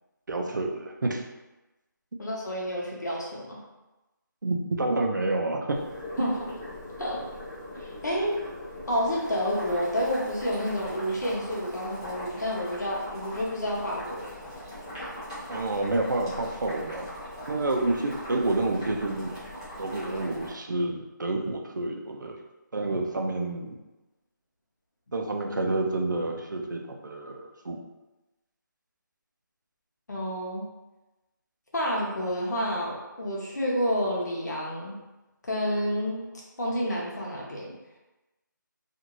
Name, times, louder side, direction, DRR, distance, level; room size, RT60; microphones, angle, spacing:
voice 1, 0.3-1.2 4.4-5.8 15.5-17.1 17.5-19.3 19.8-22.4 22.7-23.8 25.1-27.8, right 2 dB, 65° right, 2 dB, 0.5 m, -29 dB
voice 2, 2.2-3.6 6.2-6.5 7.0-7.2 7.8-8.4 8.9-14.5 30.1-30.6 31.7-35.0 35.4-36.3 36.6-37.7, equal, 60° left, -4 dB, 0.9 m, -29 dB
Boiling, 5.7-20.5, left 1 dB, 15° left, 0.6 m, -40 dB
2.6 x 2.5 x 2.9 m, 1.0 s
figure-of-eight pair, 180°, 11 cm